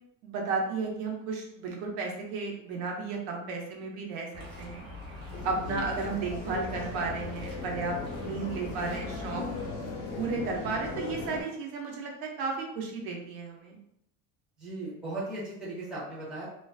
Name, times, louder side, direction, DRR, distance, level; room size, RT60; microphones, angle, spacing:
voice 1, 0.2-4.3 4.6-4.8 5.4-8.0 8.2-9.4 10.1-13.8, right 4 dB, 80° right, 0 dB, 0.7 m, -33 dB
sound 1, 4.3-9.7, left 3 dB, 45° right, 1.1 m, -43 dB
sound 2, 5.3-11.4, left 3 dB, 45° left, 0.8 m, -38 dB
voice 2, 14.6-16.5, right 2 dB, ahead, -8 dB, 0.6 m, -37 dB
2.3 x 2.3 x 2.3 m, 0.76 s
cardioid pair, 165°, 37 cm